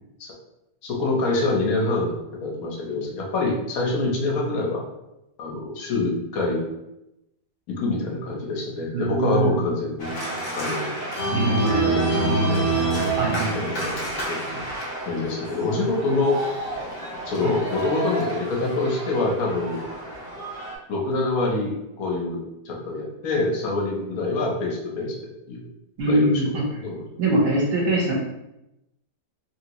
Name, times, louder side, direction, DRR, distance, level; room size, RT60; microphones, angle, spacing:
voice 1, 0.8-2.1 2.4-4.8 5.4-6.6 7.7-10.2 10.5-10.9 11.8-13.0 13.5-14.6 15.1-16.4 17.3-19.8 20.9-25.2 25.5-25.7 26.1-27.1 27.5-27.6, left 3 dB, 65° left, -2 dB, 1.0 m, -26 dB
voice 2, 8.9-9.8 11.3-11.9 12.3-12.4 13.1-13.9 17.4-17.6 26.0-26.6 27.2-28.1, right 2 dB, 60° right, -3 dB, 0.9 m, -23 dB
Organ, 10.0-20.8, right 2 dB, 80° left, 0.5 m, -28 dB
2.9 x 2.7 x 2.9 m, 0.90 s
omnidirectional pair, 2.1 m